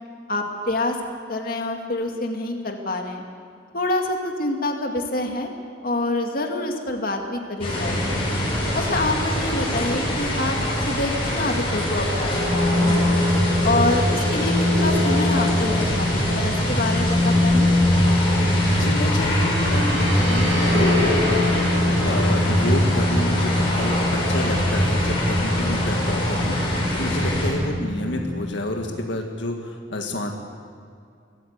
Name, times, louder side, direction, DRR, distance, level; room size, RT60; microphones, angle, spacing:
voice 1, 0.3-1.0 1.3-3.2 3.7-5.5 5.8-8.2 8.7-10.6 10.9-13.1 13.6-17.7, left 2 dB, 50° left, 3 dB, 2.2 m, -26 dB
sound 1, 7.6-27.5, equal, 30° left, 6.1 m, -23 dB
sound 2, 12.3-28.5, left 2 dB, 75° right, 7.7 m, -24 dB
voice 2, 18.7-30.3, left 1 dB, 75° left, 2 dB, 1.8 m, -29 dB
23.5 x 14.5 x 8.2 m, 2.3 s
head